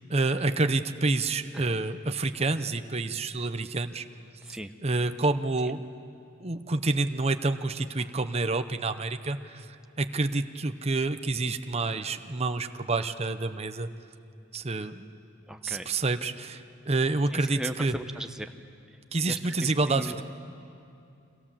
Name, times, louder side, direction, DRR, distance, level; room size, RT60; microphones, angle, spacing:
voice 1, 0.1-4.0 4.8-5.8 6.4-13.9 14.5-15.0 15.6-17.9 19.1-20.2, right 3 dB, 30° right, 8 dB, 0.8 m, -28 dB
voice 2, 15.5-15.9 17.5-18.5 19.2-20.1, equal, 5° right, 6 dB, 0.9 m, -37 dB
30.0 x 25.5 x 7.5 m, 2.6 s
head